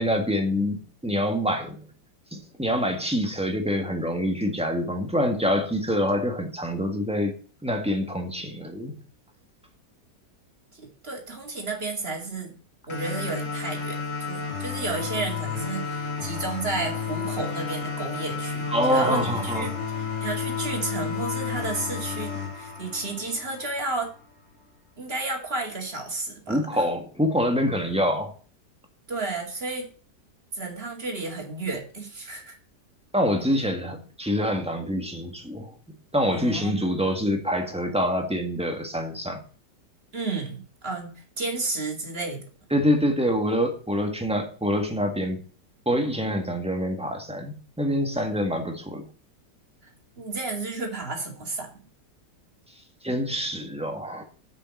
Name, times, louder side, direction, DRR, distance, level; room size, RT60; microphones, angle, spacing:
voice 1, 0.0-1.8 2.3-7.3 7.6-9.0 18.7-19.7 26.5-28.3 33.1-35.7 36.1-39.4 42.7-45.4 45.8-49.1 53.0-54.2, equal, 5° right, 3 dB, 1.5 m, -26 dB
voice 2, 10.7-12.5 12.9-19.7 20.2-24.1 25.0-26.9 29.1-29.9 30.5-32.6 36.3-36.9 40.1-42.4 48.2-48.4 49.8-51.8, right 3 dB, 35° right, 1 dB, 2.7 m, -32 dB
sound 1, 12.9-23.9, left 5 dB, 85° left, 3.8 m, -32 dB
7.6 x 6.8 x 7.7 m, 0.41 s
omnidirectional pair, 1.9 m